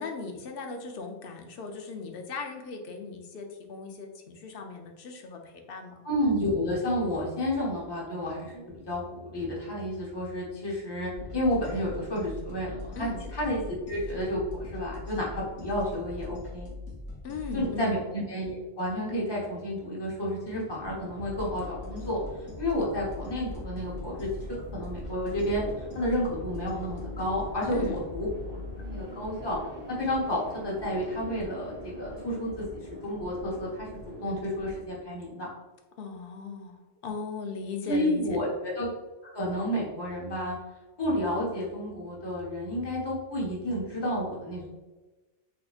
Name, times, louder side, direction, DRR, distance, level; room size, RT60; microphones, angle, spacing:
voice 1, 0.0-6.1 13.0-13.2 17.2-17.9 27.7-28.0 36.0-38.4, left 4 dB, 60° left, 4 dB, 0.7 m, -38 dB
voice 2, 6.0-13.6 13.9-16.7 17.5-22.2 22.6-24.3 24.7-25.6 25.9-28.6 28.9-29.6 29.9-32.7 33.0-33.9 34.2-35.5 37.9-38.9 39.3-40.5 41.0-44.7, left 1 dB, 25° left, -5 dB, 0.9 m, -31 dB
sound 1, 11.1-17.8 21.2-29.0, left 2 dB, 85° left, 1.1 m, -41 dB
sound 2, 20.4-34.8, equal, 15° right, 0.5 m, -44 dB
4.0 x 2.8 x 2.3 m, 1.2 s
omnidirectional pair, 1.2 m